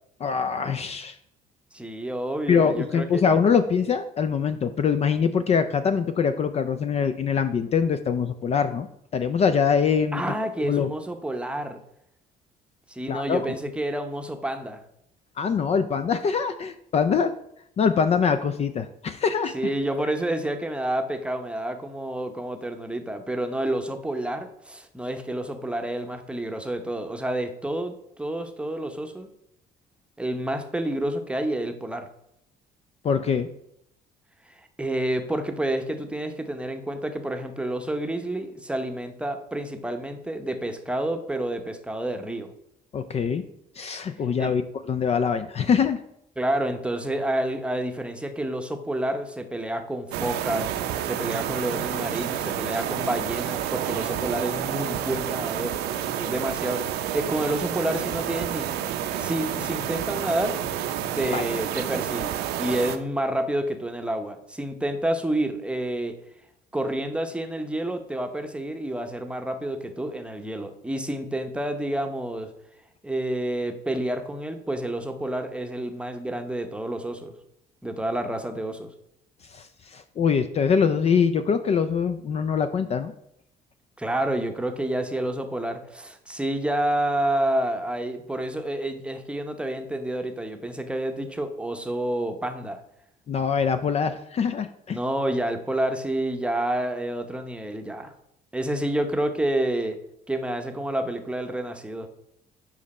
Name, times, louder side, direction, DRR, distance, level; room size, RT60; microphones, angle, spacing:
voice 1, 0.2-1.2 2.5-8.9 9.1-10.3 10.6-10.9 13.1-13.4 15.4-17.3 17.8-19.5 33.0-33.5 42.9-43.4 43.8-44.6 44.9-46.0 61.3-61.5 79.5-83.1 93.3-95.0, left 6 dB, 40° left, 11 dB, 0.4 m, -23 dB
voice 2, 1.7-3.2 10.1-11.8 12.9-14.8 19.5-29.3 30.2-32.0 34.8-42.5 44.4-44.5 46.4-50.7 51.0-55.8 56.2-58.7 59.2-60.6 61.1-66.1 66.7-72.5 73.0-77.4 77.8-78.9 84.0-92.8 94.9-98.1 98.5-100.0 100.3-102.1, right 1 dB, 5° right, 6 dB, 0.8 m, -29 dB
sound 1, 50.1-63.0, right 10 dB, 75° right, 0.6 m, -29 dB
7.3 x 5.2 x 4.2 m, 0.77 s
cardioid pair, 110°, 17 cm